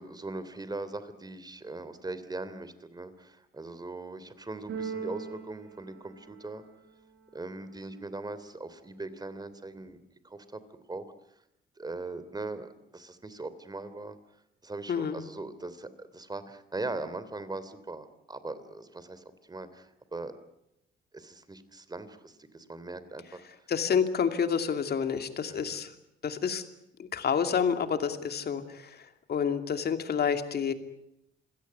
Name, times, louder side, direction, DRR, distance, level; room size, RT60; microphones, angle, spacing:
voice 1, 0.0-6.6 7.3-10.6 10.9-11.1 11.8-14.2 14.6-20.4 21.1-23.4 25.5-25.7, right 2 dB, 20° right, 13 dB, 3.0 m, -40 dB
Keyboard (musical), 4.7-6.8, right 5 dB, 65° right, 4.7 m, -40 dB
voice 2, 14.9-15.2 23.7-25.9 26.2-26.6 27.0-30.7, left 7 dB, 55° left, 8 dB, 2.6 m, -29 dB
27.0 x 17.0 x 9.6 m, 0.81 s
cardioid pair, 90°, 20 cm